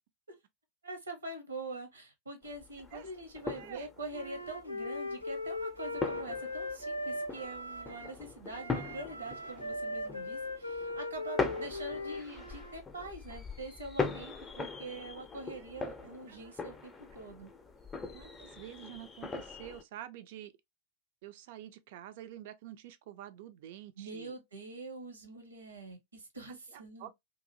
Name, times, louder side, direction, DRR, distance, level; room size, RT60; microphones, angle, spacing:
voice 1, 0.8-17.5 24.0-27.1, right 2 dB, 75° right, 0.8 m, -44 dB
sound 1, 2.4-19.8, left 4 dB, 15° left, 0.5 m, -41 dB
voice 2, 3.6-3.9 11.3-11.7 15.5-15.7 16.0-16.5 18.1-20.5 21.2-24.4 26.5-27.1, right 12 dB, 50° right, 0.4 m, -48 dB
Wind instrument woodwind instrument, 4.1-8.2 8.5-12.7, left 1 dB, 90° left, 0.5 m, -39 dB
2.7 x 2.5 x 2.6 m
figure-of-eight pair, 90°, 0 cm